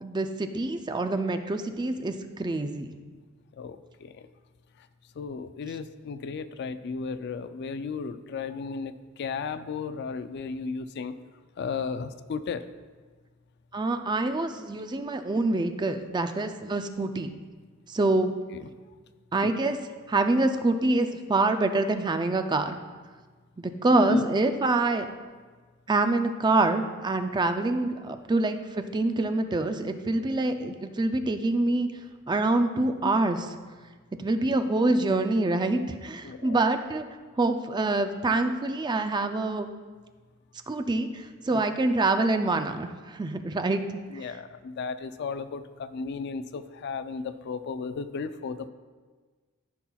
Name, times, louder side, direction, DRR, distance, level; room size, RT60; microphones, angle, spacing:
voice 1, 0.0-2.9 13.7-17.3 17.9-18.3 19.3-19.8 20.1-22.8 23.6-25.1 25.9-31.9 32.3-33.4 34.2-37.0 37.4-39.7 40.7-43.8 44.1-44.4, right 2 dB, 20° right, 7 dB, 0.4 m, -26 dB
voice 2, 3.6-4.3 5.2-11.1 11.6-12.6 18.5-18.6 19.4-19.5 23.9-24.2 30.6-30.7 36.2-36.6 41.5-41.6 44.1-48.7, left 5 dB, 50° left, 12 dB, 0.3 m, -34 dB
14.0 x 5.6 x 2.3 m, 1.4 s
head